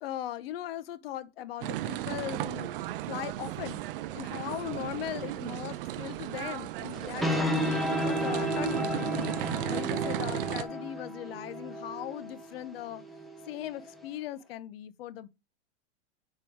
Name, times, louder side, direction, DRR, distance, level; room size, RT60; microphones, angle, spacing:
voice 1, 0.0-2.7 3.1-3.8 4.1-9.1 9.6-13.0 13.5-15.3, left 12 dB, 65° left, 0.8 m, -39 dB
sound 1, 1.6-10.6, right 14 dB, 55° right, 0.6 m, -35 dB
sound 2, 6.9-14.1, right 1 dB, ahead, 0.6 m, -33 dB
5.2 x 4.4 x 4.9 m
supercardioid pair, 160°, 32 cm